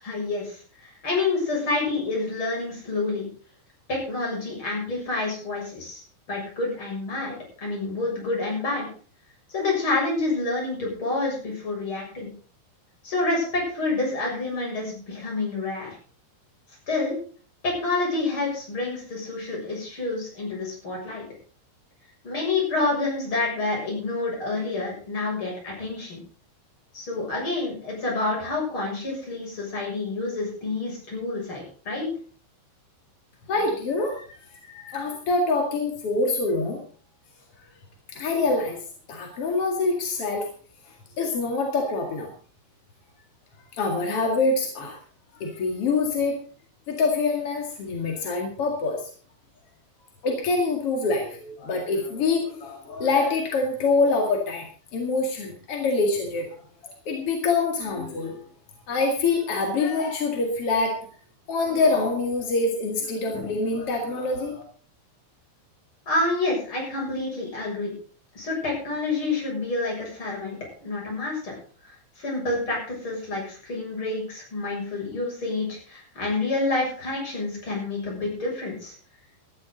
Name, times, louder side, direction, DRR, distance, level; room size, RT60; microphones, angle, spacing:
voice 1, 0.0-3.3 3.9-6.0 6.3-7.4 7.6-8.9 9.5-12.3 13.0-16.0 16.9-17.2 17.6-21.2 22.2-26.2 26.9-32.1 66.1-67.9 68.3-71.5 71.8-78.9, left 3 dB, 25° left, -2 dB, 7.6 m, -28 dB
voice 2, 33.5-34.3 34.7-36.8 38.1-38.8 39.1-40.5 41.2-42.3 43.7-45.0 45.3-46.4 46.9-49.1 50.2-54.6 54.9-56.5 56.8-58.4 58.9-61.1 61.5-64.6, left 3 dB, 45° left, 1 dB, 2.1 m, -25 dB
17.5 x 13.0 x 4.0 m, 0.42 s
omnidirectional pair, 5.4 m